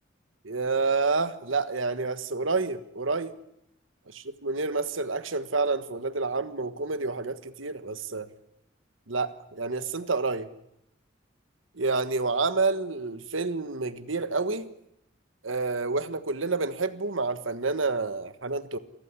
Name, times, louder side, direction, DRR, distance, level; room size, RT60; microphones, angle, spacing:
voice 1, 0.4-3.4 4.1-8.3 9.1-10.5 11.8-14.7 15.4-18.8, right 3 dB, 90° right, 12 dB, 1.5 m, -29 dB
29.0 x 14.5 x 9.8 m, 0.81 s
head